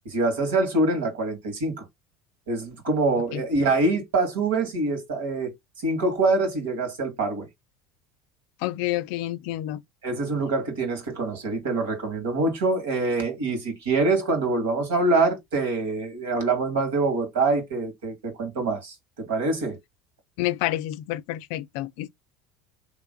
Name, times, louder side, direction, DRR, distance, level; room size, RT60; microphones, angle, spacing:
voice 1, 0.1-1.8 2.5-5.5 5.8-7.5 10.0-19.8, right 3 dB, 75° right, 1.8 m, -25 dB
voice 2, 8.6-9.8 20.4-22.1, left 15 dB, 65° left, 0.4 m, -29 dB
3.3 x 3.0 x 3.8 m
hypercardioid pair, 75°, 0 cm